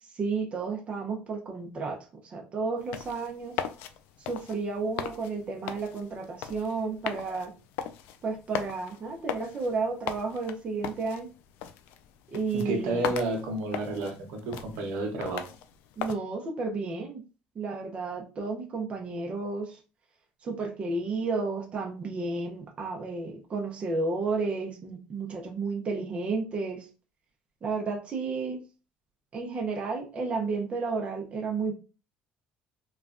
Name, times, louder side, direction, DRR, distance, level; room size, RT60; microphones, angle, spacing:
voice 1, 0.2-2.0 2.2-3.5 4.3-7.5 8.2-11.3 12.3-13.1 16.0-17.2 17.6-19.8 20.4-26.9 27.6-28.6 29.3-31.7, right 4 dB, 35° right, 1 dB, 0.6 m, -32 dB
sound 1, 2.8-16.2, left 9 dB, 80° left, 0.3 m, -39 dB
voice 2, 12.5-15.5, right 2 dB, 75° right, 4 dB, 0.8 m, -31 dB
3.1 x 2.3 x 2.5 m, 0.34 s
cardioid pair, 115°, 4 cm